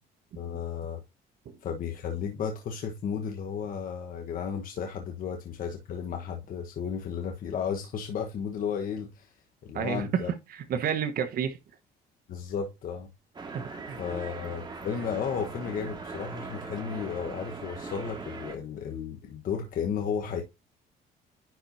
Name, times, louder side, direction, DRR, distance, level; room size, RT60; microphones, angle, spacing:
voice 1, 0.3-1.0 1.6-9.3 9.6-10.3 12.3-13.1 14.0-20.4, left 7 dB, 55° left, 1.2 m, -33 dB
voice 2, 9.7-11.6 13.5-14.0, right 8 dB, 60° right, 1.2 m, -30 dB
sound 1, 13.3-18.6, right 4 dB, 25° right, 2.1 m, -40 dB
10.5 x 4.4 x 2.7 m
cardioid pair, 110°, 17 cm